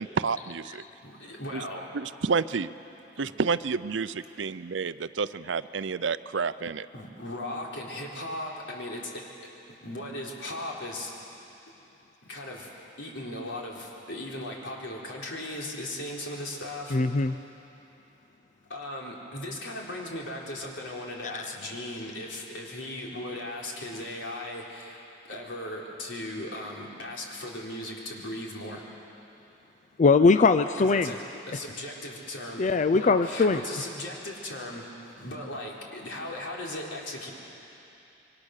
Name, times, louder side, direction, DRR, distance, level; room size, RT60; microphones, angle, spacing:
voice 1, 0.0-0.8 1.5-1.6 1.9-2.7 3.2-6.9, right 5 dB, 80° right, 14 dB, 0.6 m, -29 dB
voice 2, 1.0-1.9 3.2-3.3 4.2-4.4 6.9-9.3 9.8-11.1 12.3-12.7 13.0-17.0 18.7-28.8 30.8-31.2 31.5-32.6 32.9-34.9 35.2-37.3, left 1 dB, 90° left, -2 dB, 3.8 m, -37 dB
voice 3, 16.9-17.4 21.3-21.5 30.0-31.1 32.6-33.6, left 4 dB, 40° left, 10 dB, 0.5 m, -21 dB
27.0 x 23.0 x 6.6 m, 2.9 s
head